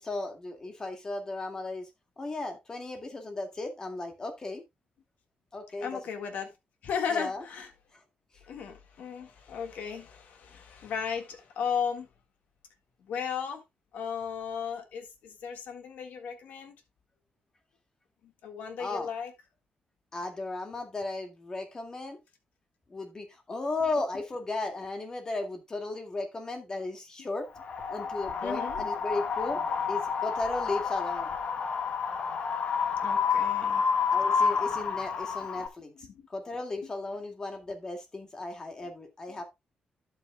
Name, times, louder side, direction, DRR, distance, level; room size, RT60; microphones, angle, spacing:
voice 1, 0.0-1.9 2.2-4.6 5.5-6.0 7.1-7.4 7.9-8.0 18.8-19.1 20.1-22.2 22.9-27.5 27.9-29.6 29.9-31.4 34.1-39.4, left 2 dB, 25° left, 2.1 m, -35 dB
voice 2, 5.8-6.5 6.8-7.7 8.5-12.1 13.0-13.6 13.9-16.8 18.2-19.3 28.4-28.8 33.0-33.8 36.1-36.3, left 7 dB, 85° left, 1.7 m, -35 dB
Wind, 27.6-35.7, left 6 dB, 60° left, 1.5 m, -29 dB
11.5 x 8.3 x 2.2 m
wide cardioid pair, 150°, 3 cm